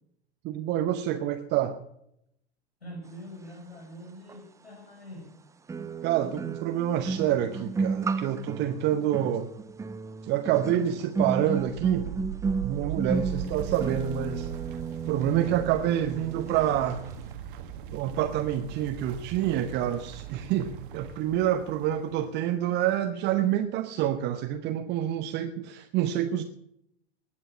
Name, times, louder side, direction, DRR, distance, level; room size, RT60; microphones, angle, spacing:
voice 1, 0.4-1.8 6.0-9.5 10.2-12.1 12.6-14.5 15.1-17.0 17.9-26.4, right 11 dB, 35° right, 7 dB, 0.9 m, -27 dB
voice 2, 2.8-5.3, equal, 75° left, 0 dB, 6.7 m, -44 dB
sound 1, 4.3-4.4 5.7-16.8 17.0-17.3, right 4 dB, 10° right, 0.6 m, -33 dB
sound 2, 11.5-22.3, right 9 dB, 55° right, 1.6 m, -40 dB
20.0 x 7.5 x 7.6 m, 0.77 s
figure-of-eight pair, 85°, 31 cm